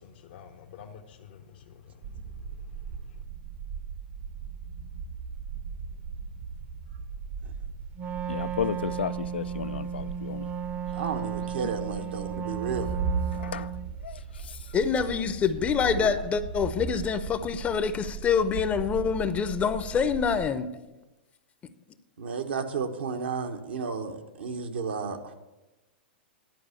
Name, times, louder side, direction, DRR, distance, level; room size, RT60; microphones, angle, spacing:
voice 1, 0.0-2.1 2.4-2.6, left 7 dB, 60° left, 0.8 m, -49 dB
sound 1, 2.0-20.5, right 5 dB, 55° right, 0.9 m, -38 dB
Wind instrument woodwind instrument, 7.9-13.9, right 8 dB, 30° right, 0.6 m, -35 dB
voice 2, 8.3-10.5 13.3-13.7 14.0-14.7, left 8 dB, 80° left, 0.4 m, -34 dB
voice 3, 10.9-12.9 15.9-16.1 20.5-20.6 22.2-25.3, right 5 dB, 75° right, 1.1 m, -32 dB
voice 4, 14.7-20.7, left 6 dB, 25° left, 0.6 m, -26 dB
11.0 x 4.9 x 8.3 m
hypercardioid pair, 110°, 6 cm